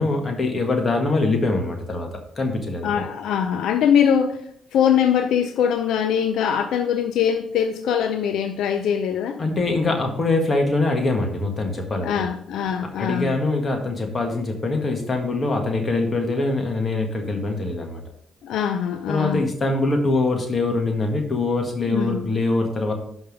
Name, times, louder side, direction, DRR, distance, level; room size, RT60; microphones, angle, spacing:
voice 1, 0.0-3.0 9.4-12.2 13.0-18.0 19.1-22.9, left 2 dB, 35° left, 1.6 m, -23 dB
voice 2, 2.8-9.4 12.0-13.3 18.4-19.4 21.9-22.3, left 8 dB, 80° left, 0.5 m, -22 dB
5.6 x 5.3 x 5.3 m
cardioid pair, 90°, 0 cm